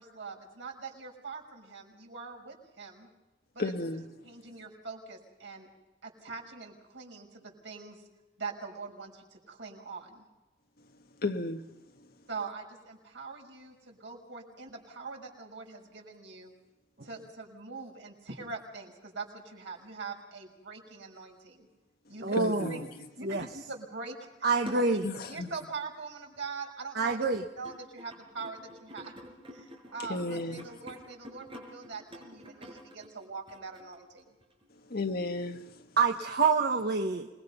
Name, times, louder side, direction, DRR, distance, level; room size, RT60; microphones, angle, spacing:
voice 1, 0.0-3.1 3.5-3.7 4.2-5.7 6.0-8.0 8.4-10.3 12.3-16.5 17.0-21.7 22.1-22.4 22.6-22.9 23.2-24.5 24.9-27.3 27.6-29.1 29.5-34.3, right 4 dB, 85° right, 1 dB, 6.1 m, -43 dB
voice 2, 3.6-4.0 11.2-11.6 22.4-22.9 25.0-25.5 30.1-30.6 34.9-35.9, left 2 dB, 55° left, 6 dB, 1.5 m, -33 dB
voice 3, 22.2-22.7 23.2-23.4 24.4-25.1 26.9-27.4 36.0-37.3, right 4 dB, 60° right, 3 dB, 1.3 m, -26 dB
sound 1, 24.6-25.5 26.4-26.5 27.1-34.6 35.0-35.1, equal, 30° right, 5.4 m, -48 dB
26.5 x 21.5 x 5.6 m, 1.1 s
head